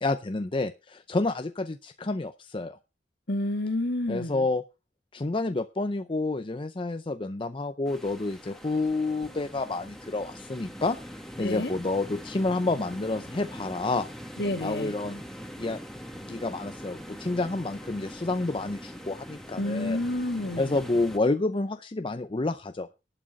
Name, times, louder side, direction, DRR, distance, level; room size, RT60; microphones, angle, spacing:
voice 1, 0.0-2.8 4.1-4.6 5.1-11.0 11.4-14.1 14.6-15.2 15.6-15.8 16.2-20.0 20.6-22.9, left 2 dB, 30° left, 9 dB, 0.6 m, -29 dB
voice 2, 3.3-4.5 11.4-11.7 14.4-14.9 19.6-20.8, left 1 dB, 65° left, 7 dB, 1.9 m, -29 dB
sound 1, 7.8-21.2, equal, ahead, 1.7 m, -42 dB
11.5 x 8.9 x 5.2 m, 0.29 s
head